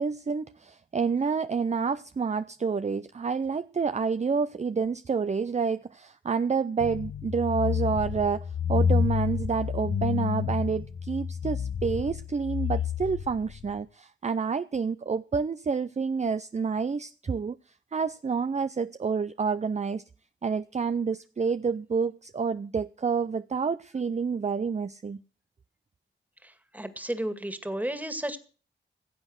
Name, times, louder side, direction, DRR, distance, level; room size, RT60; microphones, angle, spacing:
voice 1, 0.0-17.6 17.9-20.0 20.4-25.2, right 5 dB, 35° right, 0.5 m, -28 dB
sound 1, 6.8-13.7, left 7 dB, 75° left, 0.9 m, -29 dB
voice 2, 26.4-28.4, right 1 dB, 10° right, 2.0 m, -33 dB
16.0 x 7.8 x 6.4 m
cardioid pair, 55°, 20 cm